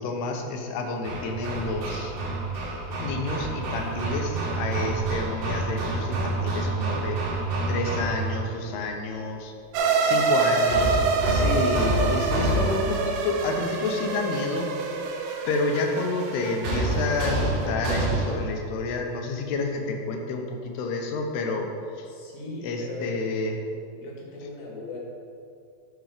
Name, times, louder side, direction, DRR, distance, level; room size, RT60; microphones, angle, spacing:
voice 1, 0.0-2.2 3.0-7.2 7.7-9.5 10.0-14.7 15.5-21.7 21.9-22.1 22.6-23.6, left 3 dB, 80° left, 3 dB, 2.7 m, -29 dB
Hammer, 1.0-8.5 10.7-13.1 16.6-18.6, right 2 dB, 60° right, 1.8 m, -28 dB
sound 1, 9.7-17.7, right 4 dB, 75° right, 2.3 m, -27 dB
voice 2, 9.8-10.5 22.1-23.2 23.9-25.0, left 3 dB, 65° left, -2 dB, 2.5 m, -39 dB
11.0 x 4.0 x 4.9 m, 2.4 s
omnidirectional pair, 4.7 m